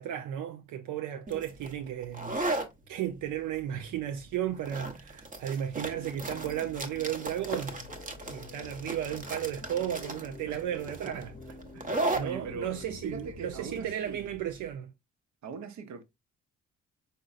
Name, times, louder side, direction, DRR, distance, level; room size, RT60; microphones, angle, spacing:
voice 1, 0.0-2.4 2.9-7.7 8.3-11.3 12.2-14.9, right 10 dB, 85° right, 0.6 m, -34 dB
sound 1, 1.3-14.7, right 2 dB, 25° right, 0.8 m, -37 dB
sound 2, 5.9-13.9, left 3 dB, 30° left, 0.7 m, -48 dB
voice 2, 11.7-14.3 15.4-16.0, right 4 dB, 65° right, 0.9 m, -42 dB
5.2 x 3.9 x 2.4 m
cardioid pair, 90°, 30 cm